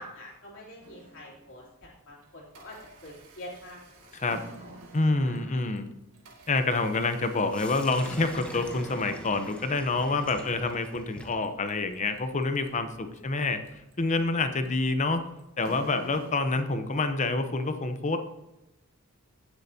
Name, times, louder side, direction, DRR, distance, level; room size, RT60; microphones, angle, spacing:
voice 1, 0.0-4.1 4.6-4.8 5.2-5.5 14.3-14.7, left 1 dB, 60° left, -4 dB, 3.5 m, -46 dB
sound 1, 0.8-1.7 2.2-17.3, right 2 dB, 75° right, 1.9 m, -50 dB
voice 2, 4.9-5.9 6.5-13.6 14.0-15.2 15.6-18.2, left 3 dB, 35° left, 8 dB, 0.8 m, -27 dB
Sink (filling or washing), 7.5-15.4, equal, 5° left, 0.9 m, -47 dB
16.5 x 7.9 x 2.8 m, 0.95 s
head